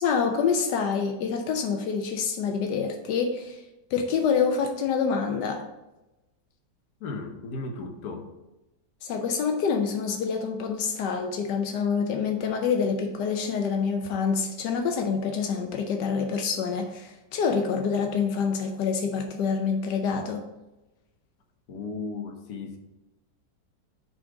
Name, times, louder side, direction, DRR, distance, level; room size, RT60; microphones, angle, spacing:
voice 1, 0.0-3.6 3.9-5.6 9.0-20.4, left 6 dB, 85° left, 4 dB, 1.3 m, -26 dB
voice 2, 7.0-8.3 21.7-22.8, left 3 dB, 65° left, 3 dB, 1.4 m, -35 dB
6.0 x 3.9 x 6.0 m, 0.99 s
omnidirectional pair, 1.8 m